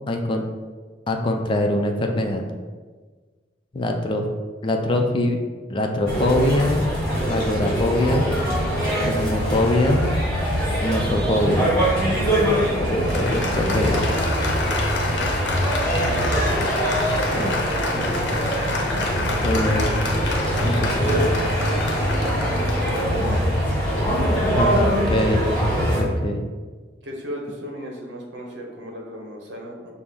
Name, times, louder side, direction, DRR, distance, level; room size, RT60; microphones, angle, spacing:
voice 1, 0.1-0.4 1.1-2.4 3.7-4.3 4.6-5.4 5.7-6.9 7.3-8.3 9.1-10.1 10.8-11.7 12.8-14.1 17.4-17.6 19.4-19.9 20.6-21.3 24.6-25.5 25.8-26.4, left 1 dB, 30° left, 3 dB, 0.4 m, -23 dB
sound 1, 6.1-26.0, equal, 5° left, 1.4 m, -23 dB
Applause, 12.4-24.3, left 2 dB, 70° left, 0.7 m, -29 dB
voice 2, 15.9-16.6 19.1-20.1 20.7-22.9 23.8-24.8 27.0-29.9, equal, 75° right, 0 dB, 0.8 m, -37 dB
5.8 x 2.0 x 3.5 m, 1.4 s
head